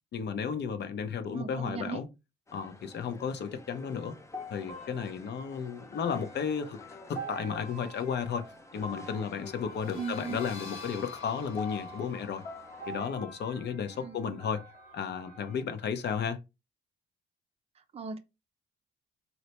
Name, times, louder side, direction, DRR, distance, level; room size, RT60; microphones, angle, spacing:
voice 1, 0.1-2.1 2.5-4.2 4.5-6.8 7.1-8.4 8.7-12.4 12.9-14.6 14.9-16.4, left 7 dB, 60° left, 0.7 m, -33 dB
voice 2, 1.3-2.0 9.9-10.4 13.9-14.3 17.9-18.2, right 6 dB, 30° right, 0.5 m, -38 dB
sound 1, 2.5-13.1, left 3 dB, 15° left, 0.5 m, -51 dB
sound 2, 4.3-15.6, equal, 40° left, 1.1 m, -46 dB
sound 3, 9.6-15.1, left 4 dB, 90° left, 0.8 m, -49 dB
4.1 x 2.1 x 2.9 m
cardioid pair, 90°, 20 cm